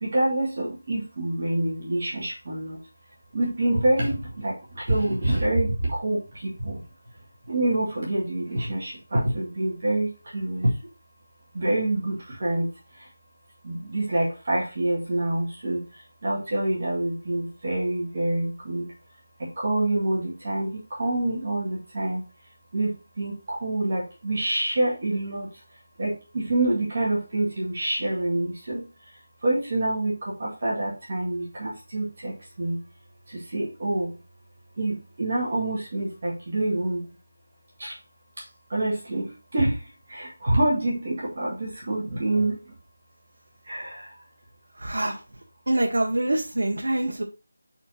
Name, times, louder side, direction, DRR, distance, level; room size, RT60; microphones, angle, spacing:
voice 1, 0.0-2.8 3.3-4.1 4.4-4.5 4.9-6.2 6.6-6.7 7.5-10.1 10.3-10.7 11.6-12.7 13.7-15.8 16.2-18.8 19.6-20.7 21.0-22.2 22.7-22.9 23.2-25.5 26.0-28.8 29.4-30.1 30.4-32.3 32.6-32.8 33.5-34.1 34.8-37.0 37.8-37.9 38.7-39.3 39.5-39.7 40.1-42.5 43.7-44.0, right 1 dB, 30° right, -5 dB, 1.9 m, -26 dB
voice 2, 44.8-45.2 45.7-47.2, right 1 dB, 85° right, 0 dB, 1.3 m, -25 dB
5.7 x 4.4 x 4.2 m, 0.30 s
figure-of-eight pair, 180°, 0 cm